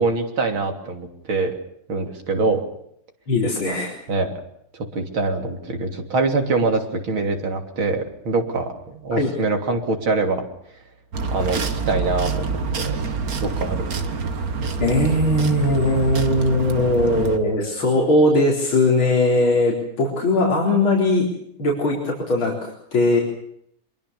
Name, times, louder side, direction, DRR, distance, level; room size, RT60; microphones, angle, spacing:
voice 1, 0.0-1.6 1.9-2.6 4.1-4.3 4.7-10.4 11.3-13.0 13.4-14.1, right 3 dB, 85° right, 4 dB, 3.9 m, -24 dB
voice 2, 3.3-3.9 9.1-9.3 14.8-21.3 21.6-23.2, left 2 dB, 90° left, -2 dB, 4.9 m, -19 dB
sound 1, 11.1-17.4, right 4 dB, 50° right, 2.0 m, -26 dB
25.0 x 22.5 x 6.9 m, 0.73 s
omnidirectional pair, 2.2 m